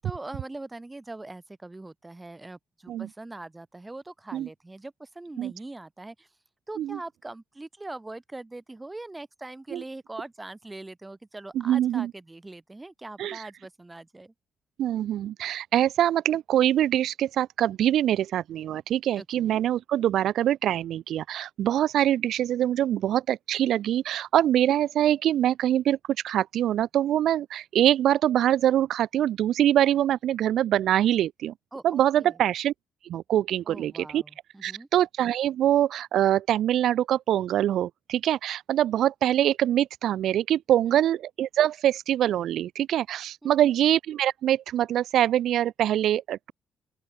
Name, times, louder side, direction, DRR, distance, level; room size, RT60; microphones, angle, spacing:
voice 1, 0.0-6.3 6.7-14.3 19.2-19.6 31.7-32.4 33.7-34.9 40.9-41.1 43.4-43.8, right 2 dB, 15° right, 7.4 m, -42 dB
voice 2, 11.5-12.1 13.2-13.4 14.8-26.0 26.2-31.5 31.8-32.7 33.1-34.2 34.6-46.5, right 11 dB, 75° right, 3.4 m, -24 dB
open air
cardioid pair, 90°, 0 cm